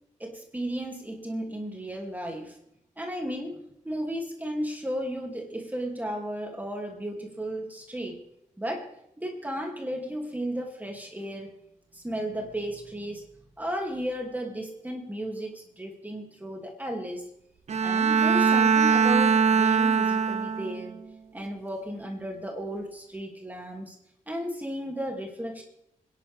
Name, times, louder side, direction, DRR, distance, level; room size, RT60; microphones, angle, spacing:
voice 1, 0.2-2.6 3.0-3.6 3.8-8.2 8.6-8.9 9.2-11.5 11.9-13.2 13.6-17.3 17.8-21.0 21.3-24.0 24.3-25.6, equal, 10° right, 1 dB, 2.5 m, -34 dB
Bowed string instrument, 17.7-20.9, right 6 dB, 55° right, 0.7 m, -22 dB
26.0 x 11.0 x 3.4 m, 0.78 s
cardioid pair, 80°, 14 cm